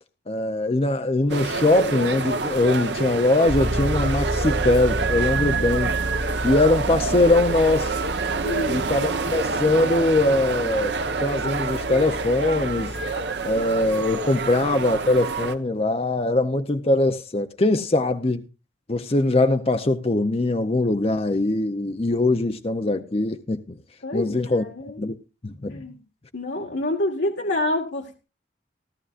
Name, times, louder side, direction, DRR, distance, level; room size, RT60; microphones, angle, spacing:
voice 1, 0.3-6.0 6.4-8.0 8.7-12.9 13.4-18.5 18.9-23.6 24.1-25.2 25.4-25.8, left 2 dB, 30° left, 0.6 m, -22 dB
sound 1, 1.3-15.5, right 4 dB, 70° right, 1.0 m, -27 dB
Bass guitar, 3.5-13.3, equal, 50° right, 2.6 m, -31 dB
voice 2, 8.4-8.9 14.3-14.5 24.0-25.0 25.7-26.0 26.3-28.3, left 1 dB, 75° left, 1.8 m, -27 dB
17.0 x 12.5 x 2.5 m
head